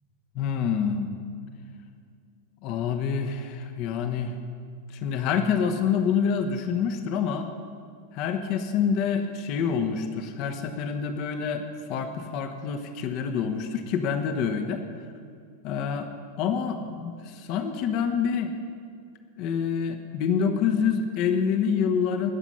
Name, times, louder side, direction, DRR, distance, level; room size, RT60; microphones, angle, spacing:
voice 1, 0.3-1.1 2.6-4.3 4.9-7.5 8.1-11.6 11.9-14.8 15.6-16.1 16.4-18.5 19.4-22.3, left 7 dB, 40° left, 6 dB, 1.1 m, -27 dB
20.0 x 7.3 x 5.6 m, 2.3 s
figure-of-eight pair, 90°, 0 cm